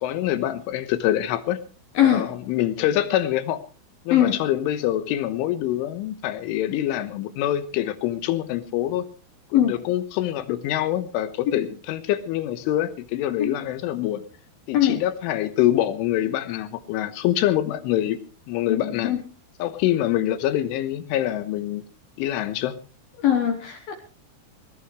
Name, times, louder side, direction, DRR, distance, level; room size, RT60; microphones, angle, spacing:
voice 1, 0.0-1.6 2.0-3.6 4.1-9.1 9.5-14.2 14.7-18.2 18.5-19.2 19.6-21.8 22.2-22.8, left 12 dB, 80° left, 11 dB, 3.6 m, -25 dB
voice 2, 2.0-2.3 4.1-4.4 9.5-9.7 13.4-13.5 14.7-15.0 18.7-19.2 23.2-23.9, left 10 dB, 65° left, 5 dB, 2.5 m, -20 dB
20.5 x 17.5 x 3.2 m, 0.35 s
omnidirectional pair, 5.6 m